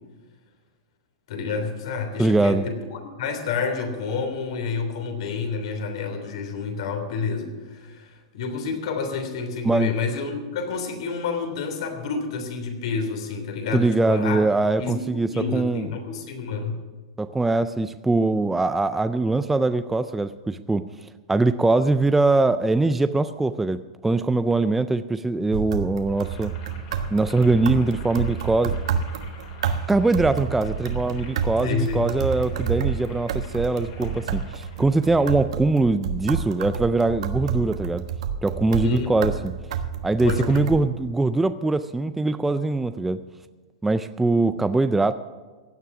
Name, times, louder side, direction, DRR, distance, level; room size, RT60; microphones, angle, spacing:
voice 1, 1.3-14.4 14.8-16.8 31.6-32.1 38.8-39.1 40.2-40.7, left 4 dB, 60° left, 5 dB, 3.2 m, -29 dB
voice 2, 2.2-2.7 9.6-10.0 13.7-15.9 17.2-20.9 21.3-26.5 27.1-28.7 29.9-38.1 38.4-39.5 40.0-43.2 43.8-45.1, right 2 dB, 5° right, 11 dB, 0.3 m, -22 dB
sound 1, 25.5-40.8, right 7 dB, 70° right, 1.2 m, -29 dB
Boiling, 26.1-35.5, left 5 dB, 40° left, 3.9 m, -47 dB
16.0 x 9.7 x 6.0 m, 1.3 s
supercardioid pair, 160°, 3 cm